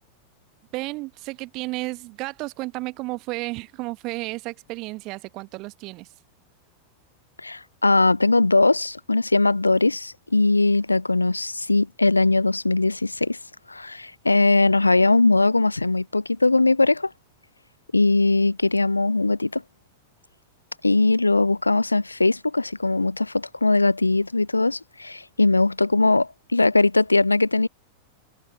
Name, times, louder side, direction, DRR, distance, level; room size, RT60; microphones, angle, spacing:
voice 1, 0.7-6.1, right 22 dB, 40° right, 1.2 m, -32 dB
voice 2, 7.4-13.4 13.7-17.1 17.9-19.6 20.8-27.7, left 2 dB, 80° left, 0.4 m, -20 dB
figure-of-eight pair, 90°, 0 cm